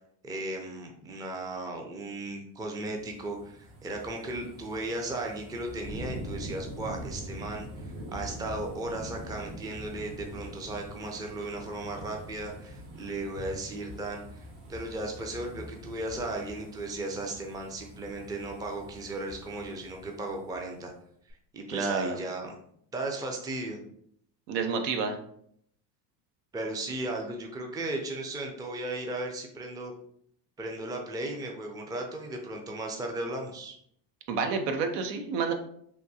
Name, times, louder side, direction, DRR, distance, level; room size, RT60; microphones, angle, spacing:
voice 1, 0.2-20.9 21.3-22.6 22.9-23.8 26.5-29.9 30.6-33.8, right 2 dB, 10° right, 2 dB, 0.4 m, -36 dB
sound 1, 2.7-20.9 21.3-21.4, equal, 65° right, 1.4 m, -44 dB
voice 2, 21.7-22.2 24.5-25.2 34.3-35.5, right 5 dB, 80° right, 6 dB, 0.7 m, -29 dB
3.5 x 2.6 x 2.7 m, 0.68 s
supercardioid pair, 90°, 49 cm